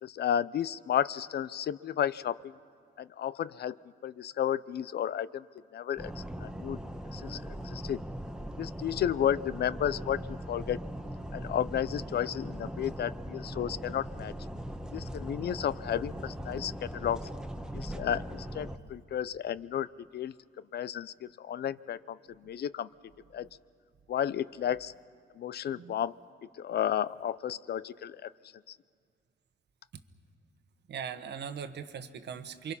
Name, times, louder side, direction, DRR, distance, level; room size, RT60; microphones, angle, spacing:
voice 1, 0.0-2.5 3.0-3.8 4.0-5.4 5.7-6.1 6.4-6.8 7.1-8.0 8.6-10.2 10.5-10.8 11.3-14.3 14.9-17.2 17.7-19.9 20.1-20.3 20.7-22.2 22.4-22.9 23.3-23.5 24.1-24.9 25.4-26.1 26.6-28.3, left 10 dB, 55° left, 18 dB, 0.5 m, -32 dB
sound 1, 6.0-18.8, equal, 5° right, 1.2 m, -40 dB
voice 2, 17.7-18.2 25.7-26.0 30.9-32.7, right 7 dB, 60° right, 10 dB, 1.3 m, -40 dB
28.5 x 24.0 x 5.6 m, 2.2 s
cardioid pair, 90°, 20 cm